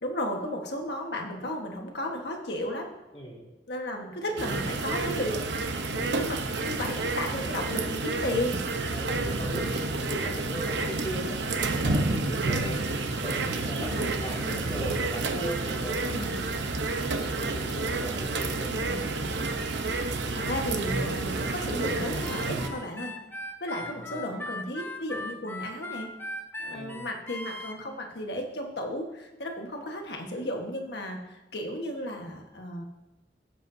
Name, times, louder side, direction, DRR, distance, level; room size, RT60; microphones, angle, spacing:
voice 1, 0.0-2.9 3.7-8.7 13.7-14.1 14.4-14.6 16.1-16.3 18.7-19.0 20.0-23.2 23.6-26.1 26.6-32.8, left 1 dB, 70° left, 2 dB, 1.5 m, -34 dB
voice 2, 3.1-3.5 8.9-12.8 13.2-16.3 16.9-19.0 22.6-22.8 23.8-24.2 26.7-27.1, right 1 dB, 30° left, -7 dB, 3.4 m, -38 dB
sound 1, 4.4-22.7, right 3 dB, 85° right, 0.9 m, -30 dB
Harmonica, 22.2-27.8, left 2 dB, 10° left, 0.7 m, -38 dB
15.0 x 8.2 x 2.7 m, 1.0 s
head